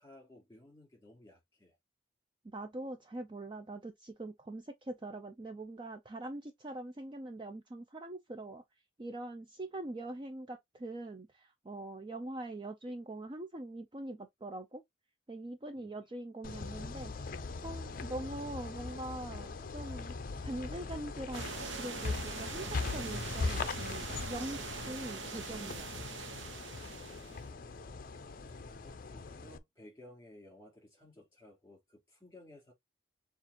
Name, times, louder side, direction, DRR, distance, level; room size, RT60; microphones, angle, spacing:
voice 1, 0.0-1.8 15.8-15.9 27.0-27.8 28.5-32.7, left 1 dB, 15° left, 3.3 m, -57 dB
voice 2, 2.4-8.6 9.0-14.8 15.3-17.1 17.6-20.2 20.4-24.6 24.9-25.9, right 2 dB, 25° right, 0.4 m, -43 dB
sound 1, 16.4-29.6, left 4 dB, 45° left, 0.5 m, -40 dB
sound 2, 21.3-27.5, right 5 dB, 65° right, 0.9 m, -43 dB
6.9 x 2.5 x 2.9 m
head